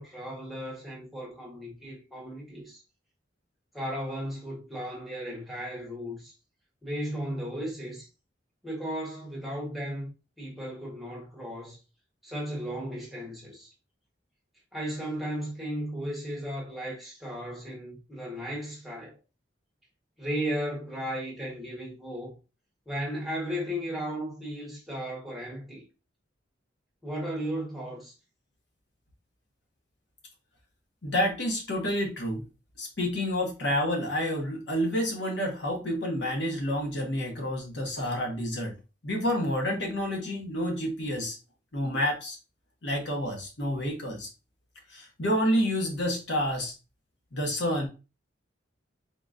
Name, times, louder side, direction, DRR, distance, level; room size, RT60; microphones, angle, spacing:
voice 1, 0.0-2.8 3.7-6.3 6.8-8.1 8.6-10.1 10.4-11.8 12.2-13.7 14.7-19.2 20.2-22.3 22.9-25.8 27.0-28.1, equal, ahead, 1.2 m, -35 dB
voice 2, 31.0-32.5 32.8-38.7 39.0-41.4 41.7-42.4 42.8-44.3 44.9-46.7 47.3-47.9, equal, 65° left, 1.0 m, -29 dB
3.8 x 2.9 x 2.5 m
head